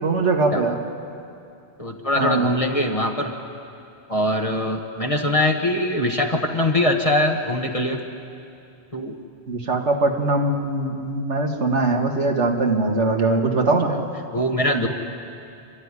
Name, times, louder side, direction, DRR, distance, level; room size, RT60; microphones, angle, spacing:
voice 1, 0.0-0.8 2.2-2.5 9.5-13.9 14.8-14.9, right 3 dB, 90° right, 4 dB, 2.1 m, -21 dB
voice 2, 1.8-3.3 4.1-8.0 8.9-9.2 14.3-14.9, left 1 dB, 30° left, 2 dB, 1.4 m, -22 dB
27.5 x 13.0 x 9.7 m, 2.6 s
omnidirectional pair, 1.1 m